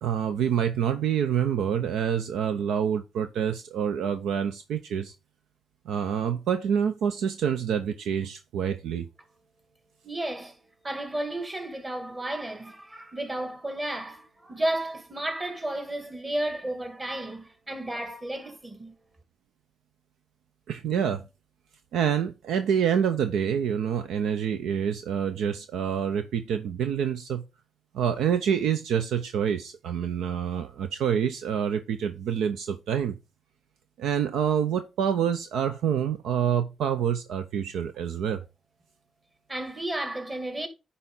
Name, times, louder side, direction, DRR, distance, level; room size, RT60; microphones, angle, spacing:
voice 1, 0.0-5.1 5.9-9.1 20.7-21.3 21.9-27.4 27.9-33.2 34.0-38.4, right 8 dB, 75° right, 0.6 m, -27 dB
voice 2, 10.0-10.6 10.8-18.9 39.5-40.7, right 1 dB, 30° right, 2.4 m, -33 dB
9.8 x 4.3 x 3.8 m
hypercardioid pair, 45°, 0 cm